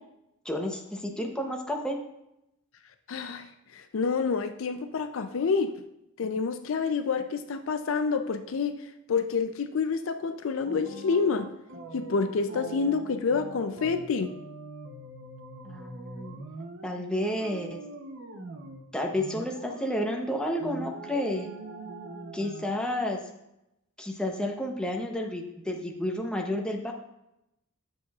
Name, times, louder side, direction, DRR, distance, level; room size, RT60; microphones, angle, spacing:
voice 1, 0.4-2.0 15.6-16.4 16.8-17.8 18.9-21.5 22.3-23.2 24.0-26.9, left 1 dB, 5° left, 1 dB, 0.7 m, -31 dB
voice 2, 3.1-5.7 6.2-8.8 9.1-11.5 11.9-14.3, left 5 dB, 60° left, 9 dB, 0.4 m, -28 dB
sound 1, 10.6-17.1 17.4-18.9 19.1-20.0 20.6-22.7, right 2 dB, 60° right, 0.7 m, -42 dB
9.7 x 6.4 x 2.4 m, 0.86 s
head